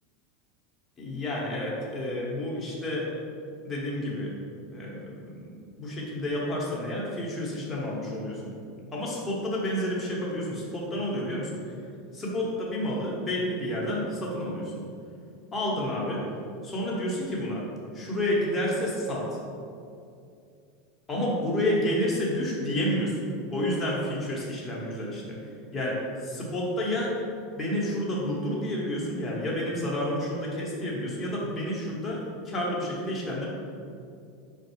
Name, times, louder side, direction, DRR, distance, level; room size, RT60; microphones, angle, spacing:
voice 1, 1.0-3.1 3.6-4.3 4.7-8.5 8.9-11.7 12.1-14.8 15.5-16.2 16.6-17.6 17.9-19.4 21.1-25.4 25.7-26.0 26.2-27.2 27.6-33.5, left 1 dB, 15° left, -5 dB, 1.1 m, -30 dB
4.5 x 2.3 x 4.4 m, 2.4 s
supercardioid pair, 120°, 0 cm